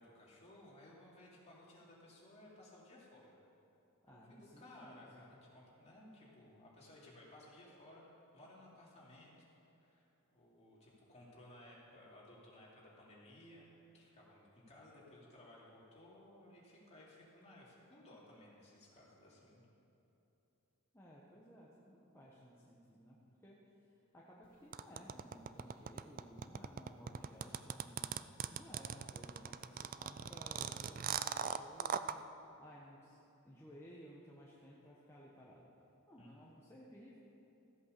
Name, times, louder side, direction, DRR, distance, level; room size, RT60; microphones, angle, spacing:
voice 1, 0.0-3.4 4.0-9.5 9.7-10.0 10.3-19.6 36.2-36.3, left 1 dB, 30° left, -6 dB, 3.1 m, -59 dB
voice 2, 4.0-5.4 20.9-23.6 23.9-28.1 28.5-32.2 32.6-33.2 33.4-35.7 36.1-37.2, equal, 10° left, -6 dB, 1.2 m, -57 dB
sound 1, 24.7-32.1, right 8 dB, 40° right, 0.4 m, -39 dB
14.5 x 8.2 x 6.7 m, 3.0 s
head